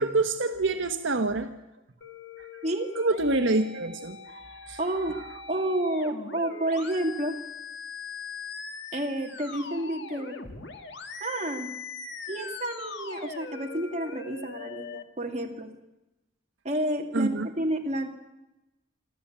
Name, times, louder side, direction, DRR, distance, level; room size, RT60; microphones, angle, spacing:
voice 1, 0.0-1.5 2.4-2.5 3.0-4.8 17.1-17.5, right 2 dB, 70° right, 6 dB, 1.2 m, -27 dB
sound 1, 2.0-15.0, left 5 dB, 60° left, 1.8 m, -41 dB
voice 2, 4.8-5.2 5.5-7.4 8.9-10.4 11.2-11.7 12.3-15.7 16.6-18.1, right 1 dB, 35° right, 2 dB, 2.4 m, -30 dB
26.0 x 13.0 x 8.7 m, 0.96 s
head